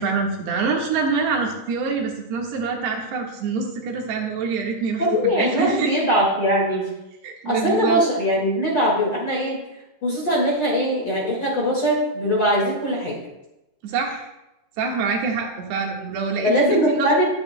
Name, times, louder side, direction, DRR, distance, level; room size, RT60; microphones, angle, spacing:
voice 1, 0.0-5.9 7.2-8.0 13.8-14.3 14.8-17.1, right 4 dB, 85° right, 0 dB, 3.7 m, -25 dB
voice 2, 5.0-6.9 7.4-9.6 10.0-13.2 16.4-17.2, equal, 40° left, -3 dB, 1.9 m, -21 dB
19.0 x 9.1 x 2.2 m, 0.95 s
omnidirectional pair, 4.6 m